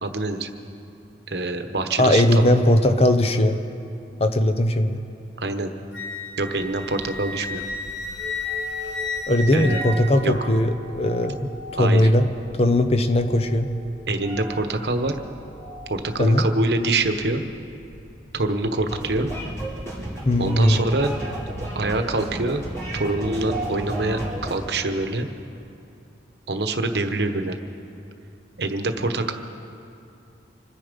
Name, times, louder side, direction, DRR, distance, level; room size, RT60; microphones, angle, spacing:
voice 1, 0.0-0.5 1.3-2.4 5.4-5.7 6.4-7.6 9.5-9.8 10.2-10.3 11.8-12.1 14.1-15.1 15.9-17.4 18.3-19.3 20.4-21.1 21.7-22.6 22.9-25.3 26.5-27.6 28.6-29.3, right 2 dB, 70° right, 7 dB, 1.1 m, -25 dB
voice 2, 2.0-3.6 4.2-5.0 9.3-12.3 12.5-13.7 16.2-16.4 20.2-20.9, left 1 dB, 35° left, 8 dB, 0.8 m, -19 dB
Wind instrument woodwind instrument, 5.9-10.5, left 3 dB, 70° left, 1.5 m, -32 dB
sound 1, 6.5-19.7, right 1 dB, 25° right, 2.5 m, -41 dB
sound 2, 18.9-24.5, right 1 dB, 15° left, 4.1 m, -32 dB
26.0 x 9.9 x 5.2 m, 2.7 s
head